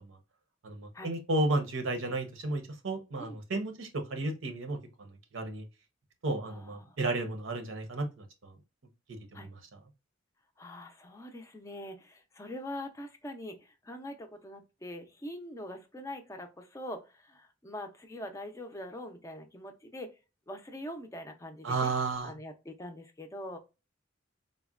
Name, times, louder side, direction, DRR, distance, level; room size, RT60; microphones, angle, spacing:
voice 1, 0.6-5.1 5.3-5.6 6.2-8.2 9.3-9.5 21.6-22.3, right 2 dB, 80° right, 0.7 m, -32 dB
voice 2, 6.4-7.0 9.3-9.5 10.6-20.1 20.5-21.9 22.2-23.6, left 1 dB, 15° left, 0.4 m, -43 dB
3.8 x 2.1 x 2.3 m
head